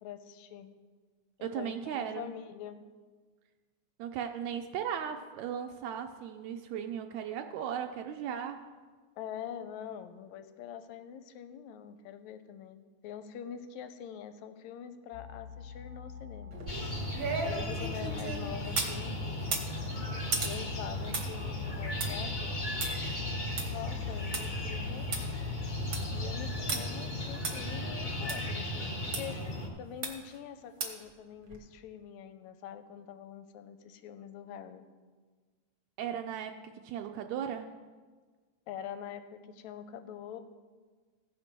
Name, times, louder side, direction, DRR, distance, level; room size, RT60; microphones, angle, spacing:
voice 1, 0.0-0.7 1.4-2.8 9.2-16.8 17.4-19.7 20.4-22.6 23.7-25.3 26.1-29.4 29.8-34.9 38.7-40.4, left 9 dB, 80° left, 9 dB, 1.9 m, -44 dB
voice 2, 1.4-2.3 4.0-8.6 36.0-37.7, right 8 dB, 80° right, 5 dB, 1.8 m, -37 dB
sound 1, 15.1-26.6, left 7 dB, 25° right, 0.8 m, -43 dB
sound 2, 16.5-19.0 19.4-24.4 24.8-24.9 25.1-25.2 25.7-26.1 26.7-26.8 27.4-27.5 28.3-28.4 29.1-29.2 30.0-30.3 30.8-31.1 31.5-31.6, right 3 dB, 50° right, 1.1 m, -36 dB
sound 3, 16.7-29.7, left 1 dB, 40° left, 0.6 m, -36 dB
15.0 x 5.2 x 5.9 m, 1.4 s
omnidirectional pair, 3.3 m